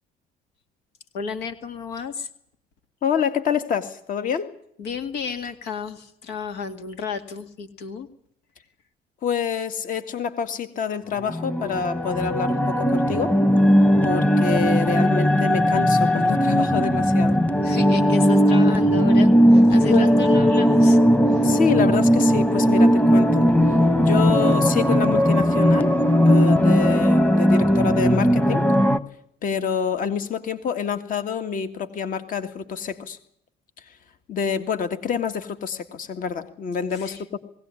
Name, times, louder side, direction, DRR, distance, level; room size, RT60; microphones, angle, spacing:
voice 1, 1.1-2.3 4.8-8.1 17.6-21.0 21.3-21.5 36.9-37.2, left 5 dB, 90° left, 9 dB, 2.1 m, -32 dB
voice 2, 3.0-4.5 9.2-13.4 14.0-17.4 19.9-20.1 21.4-23.4 24.0-25.9 26.2-28.6 29.4-33.2 34.3-37.4, left 7 dB, 55° left, 10 dB, 2.0 m, -27 dB
sound 1, 11.3-29.0, equal, 10° left, 1.2 m, -18 dB
20.5 x 17.5 x 9.7 m, 0.70 s
cardioid pair, 110°, 17 cm